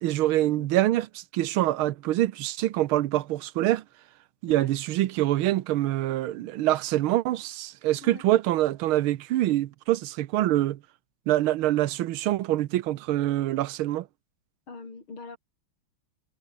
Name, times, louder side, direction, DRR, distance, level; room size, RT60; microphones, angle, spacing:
voice 1, 0.0-3.8 4.4-10.8 11.3-14.1, right 14 dB, 85° right, 1.6 m, -25 dB
voice 2, 14.7-15.4, left 3 dB, 90° left, 5.6 m, -42 dB
omnidirectional pair, 2.2 m